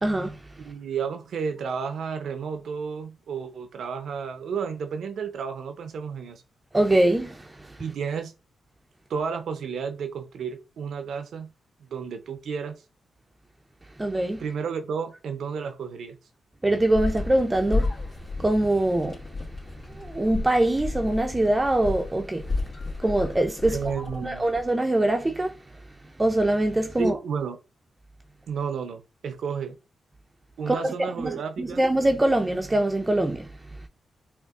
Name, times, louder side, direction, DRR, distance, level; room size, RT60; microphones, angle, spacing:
voice 1, 0.0-0.4 6.7-7.8 14.0-14.4 16.6-17.9 18.4-19.2 19.9-22.5 23.0-23.9 24.2-25.6 26.2-27.2 30.7-33.5, right 1 dB, 25° right, 0.5 m, -23 dB
voice 2, 0.6-6.4 7.8-8.3 9.1-11.5 11.8-12.8 14.4-16.2 23.7-24.4 27.0-27.6 28.5-29.8 30.6-31.8, right 6 dB, 75° right, 0.6 m, -32 dB
sound 1, 16.9-24.7, left 3 dB, 60° left, 1.7 m, -33 dB
5.1 x 2.5 x 2.4 m
supercardioid pair, 50°, 0 cm